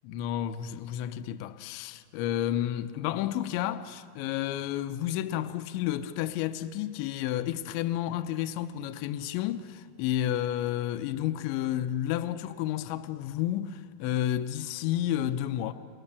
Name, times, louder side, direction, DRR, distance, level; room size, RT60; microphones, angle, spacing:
voice 1, 0.0-15.7, left 12 dB, 80° left, 3.0 m, -31 dB
29.0 x 24.5 x 6.9 m
omnidirectional pair, 5.5 m